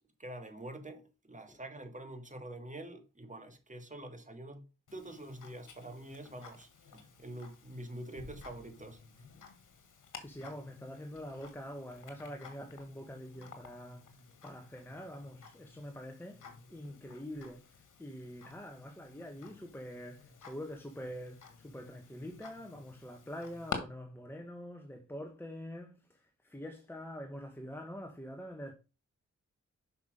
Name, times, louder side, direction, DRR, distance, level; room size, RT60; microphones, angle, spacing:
voice 1, 0.2-4.6 4.9-9.0, right 1 dB, 25° right, 2.0 m, -46 dB
Tick-tock, 4.9-23.8, left 6 dB, 70° left, 1.7 m, -51 dB
voice 2, 10.2-14.1 14.4-16.4 16.7-17.7 18.0-28.7, equal, 5° left, 1.5 m, -45 dB
5.9 x 5.7 x 5.2 m
supercardioid pair, 40°, 32 cm